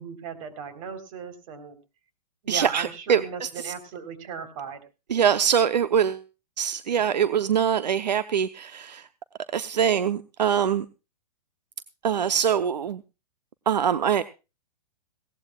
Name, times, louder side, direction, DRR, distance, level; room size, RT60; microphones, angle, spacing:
voice 1, 0.0-1.8 2.4-4.8, right 6 dB, 50° right, 10 dB, 3.7 m, -36 dB
voice 2, 2.5-3.7 5.1-6.2 6.6-9.1 9.5-10.9 12.0-13.0 13.7-14.2, right 8 dB, 85° right, 14 dB, 0.7 m, -23 dB
19.0 x 17.0 x 2.3 m, 0.30 s
hypercardioid pair, 125°, 21 cm